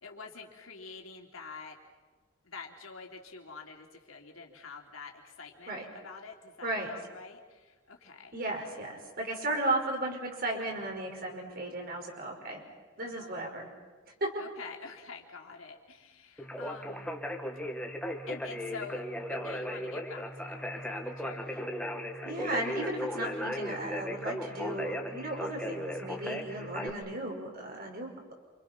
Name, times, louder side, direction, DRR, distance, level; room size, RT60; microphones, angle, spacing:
voice 1, 0.0-1.8 2.4-8.3 13.0-13.3 14.4-17.1 18.3-21.5 22.2-22.5 22.9-23.2, left 4 dB, 85° left, 1 dB, 3.3 m, -47 dB
voice 2, 6.6-6.9 8.3-12.6 13.0-13.7 14.1-14.3 22.2-28.3, right 2 dB, 45° right, 2 dB, 5.2 m, -35 dB
Conversation, 16.4-26.9, equal, 5° left, 1.8 m, -36 dB
28.5 x 27.0 x 6.0 m, 1.3 s
head